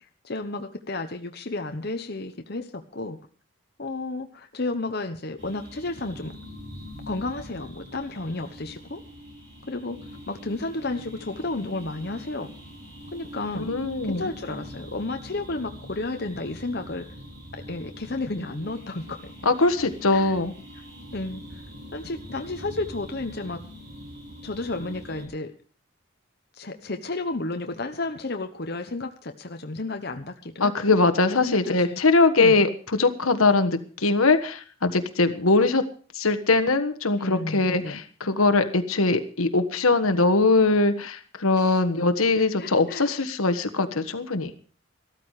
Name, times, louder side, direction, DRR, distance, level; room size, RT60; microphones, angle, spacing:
voice 1, 0.2-3.2 3.8-6.3 7.1-9.0 9.7-10.0 10.3-12.5 13.1-13.7 14.1-17.1 17.7-19.3 20.1-20.3 21.1-21.4 21.9-23.6 24.4-25.5 26.6-31.0 31.4-32.0 32.4-32.6 37.2-38.0 41.6-41.8 42.4-43.1, left 2 dB, 50° left, 6 dB, 1.0 m, -32 dB
sound 1, 5.4-25.3, equal, 60° right, 7.5 m, -43 dB
voice 2, 13.5-14.3 19.4-20.5 30.6-35.8 36.1-44.5, left 3 dB, 85° left, 8 dB, 1.5 m, -21 dB
14.5 x 13.5 x 4.9 m, 0.41 s
head